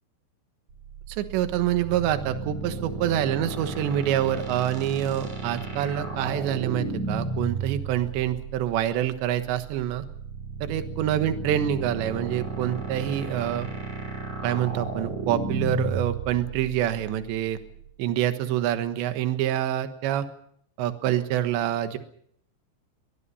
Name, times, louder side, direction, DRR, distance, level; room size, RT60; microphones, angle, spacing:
sound 1, 0.7-17.9, right 3 dB, 40° right, 7.5 m, -33 dB
voice 1, 1.1-10.0 10.6-13.7 14.4-17.6 18.0-20.3 20.8-22.0, right 11 dB, 70° right, 9 dB, 3.3 m, -26 dB
23.0 x 21.5 x 5.6 m, 0.68 s
omnidirectional pair, 5.8 m